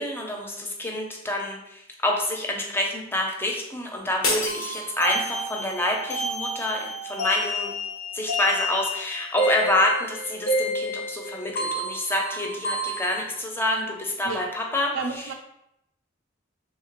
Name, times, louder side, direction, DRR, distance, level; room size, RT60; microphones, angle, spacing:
voice 1, 0.0-7.7 8.1-15.3, left 1 dB, 10° left, 1 dB, 0.5 m, -27 dB
sound 1, 4.2-5.5, left 2 dB, 90° left, 0.8 m, -29 dB
sound 2, 4.5-13.2, equal, 60° left, 0.6 m, -30 dB
voice 2, 14.9-15.3, right 4 dB, 80° right, 3 dB, 0.3 m, -31 dB
3.2 x 2.9 x 2.9 m, 0.81 s
head